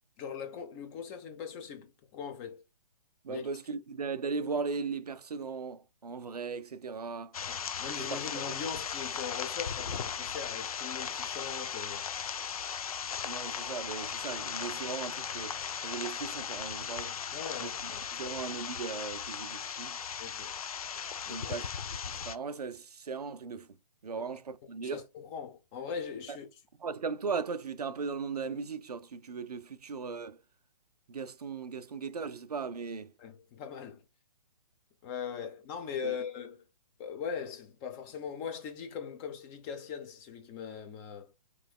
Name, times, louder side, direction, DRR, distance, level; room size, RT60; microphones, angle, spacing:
voice 1, 0.2-2.6 3.3-3.5 7.4-12.1 17.3-18.0 20.2-20.5 21.2-21.5 24.1-24.2 24.9-26.5 33.2-34.0 35.0-36.6 37.0-41.3, left 7 dB, 20° left, 0.6 m, -40 dB
voice 2, 3.2-7.4 8.1-8.4 13.2-15.6 15.8-17.1 17.6-20.0 21.3-21.6 22.1-23.7 24.0-25.0 26.3-26.4 26.8-30.4 31.1-33.1 36.0-36.2, right 5 dB, 80° right, 0.5 m, -37 dB
sound 1, 7.3-22.4, left 7 dB, 65° left, 0.5 m, -37 dB
3.9 x 3.0 x 2.2 m
figure-of-eight pair, 130°, 20 cm